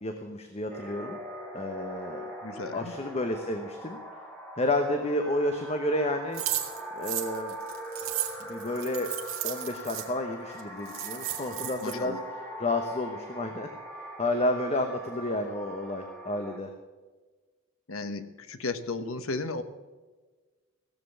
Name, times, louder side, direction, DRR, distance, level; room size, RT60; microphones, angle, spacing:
voice 1, 0.0-1.2 1.5-2.3 2.7-4.0 4.6-6.4 7.0-7.5 8.5-9.1 9.4-13.7 14.2-16.7, left 1 dB, 30° left, 6 dB, 1.0 m, -31 dB
sound 1, 0.7-16.6, equal, 10° left, 2.8 m, -42 dB
voice 2, 2.4-2.9 11.8-12.2 17.9-19.6, left 3 dB, 85° left, 10 dB, 1.1 m, -34 dB
sound 2, 6.3-10.1 10.6-10.7 10.9-11.9, right 12 dB, 80° right, 1.8 m, -34 dB
16.0 x 7.7 x 8.4 m, 1.3 s
head